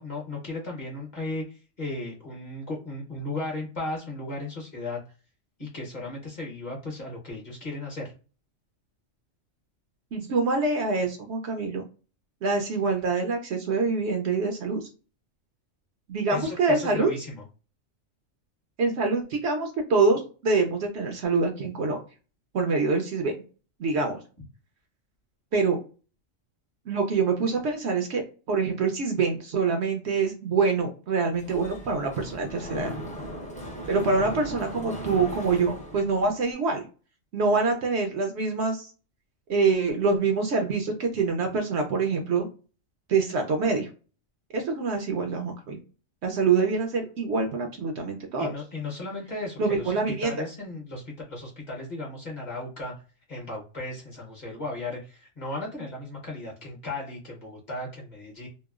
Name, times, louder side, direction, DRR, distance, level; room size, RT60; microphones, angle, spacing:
voice 1, 0.0-1.4 1.8-5.0 5.6-8.1 16.3-17.4 48.4-52.9 53.3-58.5, left 2 dB, 40° left, -2 dB, 0.9 m, -35 dB
voice 2, 10.1-11.8 12.4-14.9 16.1-17.1 18.8-22.0 22.5-23.3 23.8-24.2 25.5-25.8 26.9-28.2 28.5-33.0 33.9-36.9 37.3-38.9 39.5-42.5 43.1-43.9 44.5-45.8 46.2-48.5 49.6-50.4, right 4 dB, 65° right, 4 dB, 0.7 m, -25 dB
Mechanisms, 31.3-36.5, equal, 10° left, 0.3 m, -38 dB
2.9 x 2.0 x 2.3 m, 0.35 s
omnidirectional pair, 1.4 m